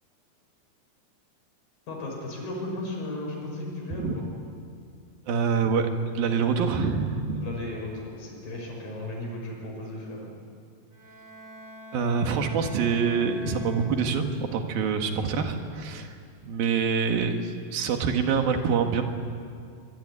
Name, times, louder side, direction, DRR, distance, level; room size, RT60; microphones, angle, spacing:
voice 1, 1.9-4.3 7.3-10.4, left 2 dB, 75° left, 0 dB, 7.9 m, -35 dB
voice 2, 5.3-5.9 6.2-7.4 11.9-16.1 16.4-19.0, right 5 dB, 80° right, 5 dB, 3.7 m, -25 dB
Bowed string instrument, 10.9-14.4, left 1 dB, 30° right, 5.8 m, -45 dB
24.5 x 23.5 x 9.8 m, 2.3 s
omnidirectional pair, 4.1 m